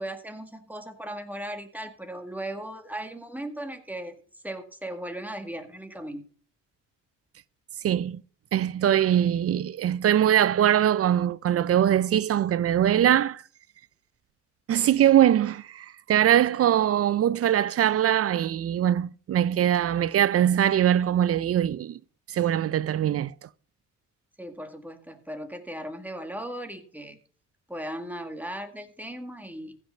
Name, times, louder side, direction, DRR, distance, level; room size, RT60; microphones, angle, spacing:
voice 1, 0.0-6.3 24.4-27.2 27.7-29.8, right 1 dB, 5° right, 2.0 m, -37 dB
voice 2, 7.8-8.2 8.5-13.4 14.7-22.0 22.3-23.3, right 10 dB, 50° right, 0.5 m, -22 dB
15.5 x 5.8 x 5.6 m
cardioid pair, 90°, 30 cm